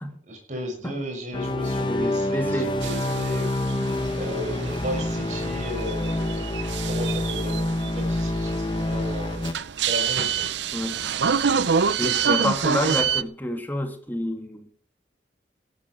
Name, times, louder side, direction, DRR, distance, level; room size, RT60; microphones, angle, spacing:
voice 1, 0.3-3.5 4.1-9.4 9.8-10.5, equal, 45° right, 6.2 m, -35 dB
sound 1, 1.3-9.5, left 1 dB, 25° left, 1.3 m, -27 dB
voice 2, 1.8-2.7 10.7-11.0 12.0-14.7, left 1 dB, 10° left, 1.9 m, -28 dB
sound 2, 2.8-13.2, right 6 dB, 85° right, 0.6 m, -27 dB
17.5 x 12.5 x 4.5 m
head